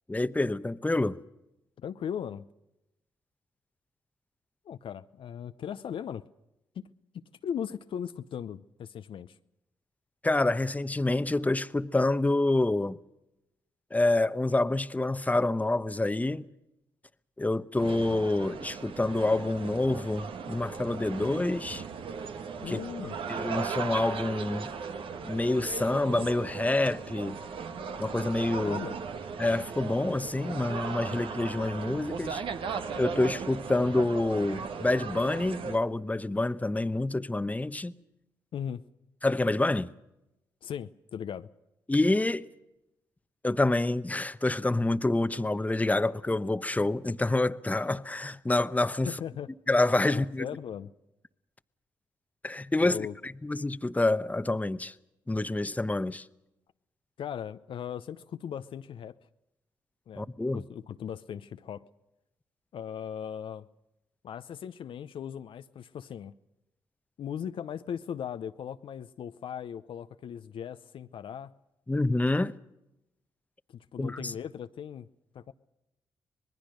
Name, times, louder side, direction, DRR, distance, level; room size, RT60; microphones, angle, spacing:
voice 1, 0.1-1.2 10.2-13.0 13.9-16.5 17.4-21.8 22.7-22.8 23.3-24.7 25.2-27.4 28.0-28.8 29.4-32.4 33.0-37.9 39.2-39.9 41.9-42.5 43.4-49.1 49.7-50.5 52.4-53.0 53.2-54.9 55.3-56.3 60.2-60.6 71.9-72.6 74.0-74.3, left 2 dB, 15° left, 0.9 m, -27 dB
voice 2, 1.8-2.5 4.6-6.2 6.7-6.8 7.1-9.4 22.6-23.2 28.6-29.0 38.5-38.8 40.6-41.5 49.0-49.5 50.1-50.9 52.8-53.1 57.2-59.2 60.1-60.3 60.5-61.8 62.7-63.7 64.2-66.3 67.2-71.5 73.7-75.1 75.3-75.5, left 8 dB, 65° left, 0.7 m, -38 dB
sound 1, 17.8-35.8, right 6 dB, 65° right, 1.4 m, -37 dB
26.0 x 20.0 x 6.5 m
hypercardioid pair, 45°, 10 cm